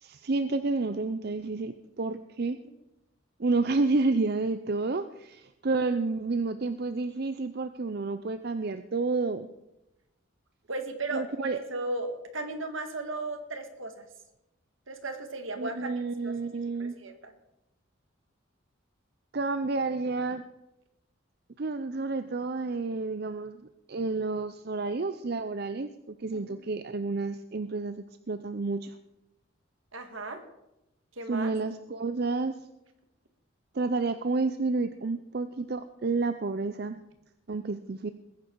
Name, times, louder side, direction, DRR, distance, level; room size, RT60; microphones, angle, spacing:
voice 1, 0.0-2.6 3.4-9.5 11.1-11.6 15.6-17.0 19.3-20.4 21.6-23.6 23.9-28.9 31.3-32.5 33.7-37.0 37.5-38.1, right 3 dB, 50° right, 10 dB, 0.5 m, -30 dB
voice 2, 10.7-14.1 14.9-15.9 16.2-17.3 26.3-26.6 29.9-30.4 31.2-31.5, right 2 dB, 75° right, 7 dB, 1.9 m, -36 dB
21.0 x 10.5 x 4.6 m, 0.92 s
head